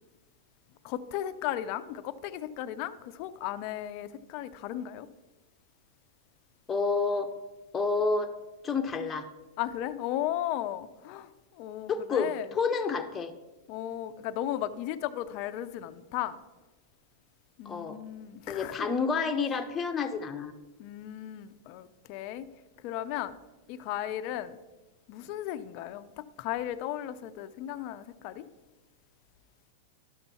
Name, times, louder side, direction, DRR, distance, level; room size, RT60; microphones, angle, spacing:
voice 1, 0.8-5.1 9.6-11.3 11.6-12.4 13.7-16.4 17.6-18.9 20.8-22.5 22.8-23.4 23.7-24.6 25.1-28.4, left 12 dB, 50° left, 0.6 m, -35 dB
voice 2, 6.7-7.3 7.7-8.3 8.6-9.3 11.9-13.3 17.6-18.0 18.5-20.5, left 4 dB, 20° left, 0.9 m, -29 dB
11.5 x 6.8 x 4.4 m
hypercardioid pair, 115°, 0 cm